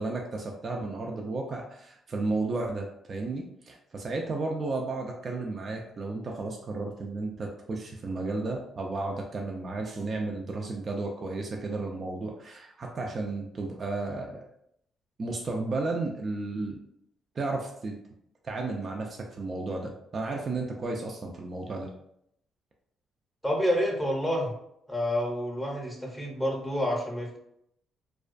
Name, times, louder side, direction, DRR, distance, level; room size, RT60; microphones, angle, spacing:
voice 1, 0.0-14.5 15.2-16.8 17.4-18.0 18.4-21.9, right 3 dB, 45° right, 0 dB, 0.3 m, -33 dB
voice 2, 23.4-24.5 24.9-27.4, equal, ahead, -2 dB, 0.7 m, -28 dB
2.3 x 2.2 x 2.4 m, 0.75 s
cardioid pair, 90°, 0 cm